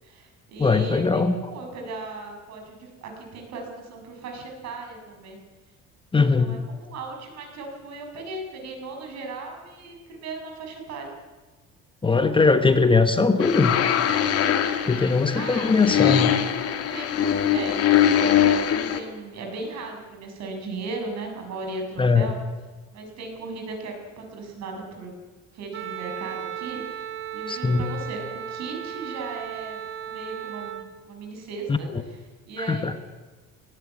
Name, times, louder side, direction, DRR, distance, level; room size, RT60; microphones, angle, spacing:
voice 1, 0.0-5.4 6.4-11.1 15.3-16.5 16.9-17.8 18.2-18.5 18.9-22.4 22.9-25.1 25.5-27.1 27.3-33.0, right 3 dB, 60° right, 2 dB, 6.9 m, -37 dB
voice 2, 0.6-1.4 6.1-6.6 12.0-13.8 14.9-16.3 22.0-22.3 27.5-27.8 31.7-31.8 32.7-32.9, left 4 dB, 15° left, 8 dB, 1.2 m, -20 dB
sound 1, 13.4-19.0, left 9 dB, 50° left, 2.5 m, -22 dB
Wind instrument woodwind instrument, 25.7-30.9, right 10 dB, 45° right, 1.9 m, -35 dB
19.0 x 17.0 x 9.6 m, 1.3 s
cardioid pair, 130°, 30 cm